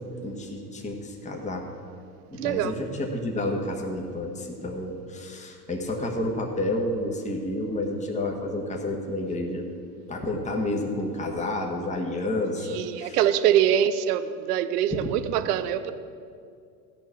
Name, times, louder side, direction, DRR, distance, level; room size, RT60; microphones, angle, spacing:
voice 1, 0.0-1.7 2.3-9.6 10.1-13.2, left 1 dB, 15° left, 0 dB, 1.7 m, -30 dB
voice 2, 2.4-2.7 12.7-15.9, right 10 dB, 70° right, 12 dB, 0.8 m, -24 dB
14.0 x 5.6 x 8.5 m, 2.3 s
hypercardioid pair, 90°, 48 cm